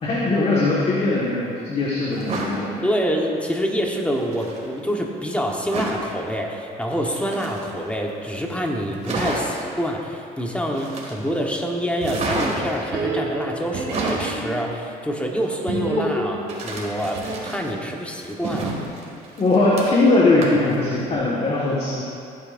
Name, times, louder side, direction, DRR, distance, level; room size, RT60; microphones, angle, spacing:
voice 1, 0.0-2.7 19.4-22.0, left 2 dB, 35° left, -6 dB, 1.6 m, -20 dB
sound 1, 2.1-2.6 4.1-4.6 5.7-6.1 6.9-7.9 8.3-8.4 8.7-8.8 9.0-9.6 10.7-11.4 12.0-12.8 13.7-14.3 16.5-17.7 18.1-20.1 20.4-20.7 21.1-21.2, right 2 dB, 40° right, 2.1 m, -30 dB
voice 2, 2.8-18.7, equal, 5° left, 0 dB, 1.2 m, -26 dB
sound 2, 12.0-14.8 15.7-17.6, right 3 dB, 65° right, 1.7 m, -30 dB
16.0 x 9.0 x 2.6 m, 2.5 s
cardioid pair, 110°, 17 cm